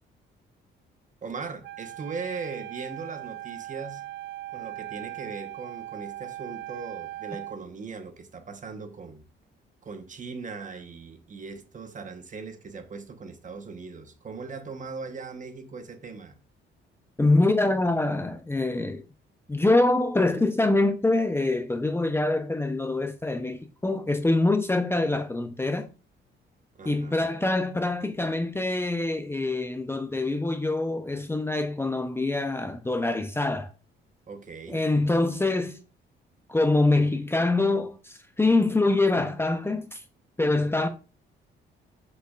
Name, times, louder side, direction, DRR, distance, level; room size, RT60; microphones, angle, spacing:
voice 1, 1.2-4.0 4.5-9.2 9.8-16.4 26.7-27.4 34.3-34.8, right 4 dB, 40° right, 1.2 m, -39 dB
Wind instrument woodwind instrument, 1.6-7.6, right 15 dB, 65° right, 0.4 m, -39 dB
voice 2, 17.2-19.0 19.5-25.9 26.9-33.7 34.7-35.8 36.5-40.0 40.4-40.9, left 2 dB, 10° left, 0.7 m, -25 dB
7.7 x 6.5 x 2.5 m
cardioid pair, 90°, 20 cm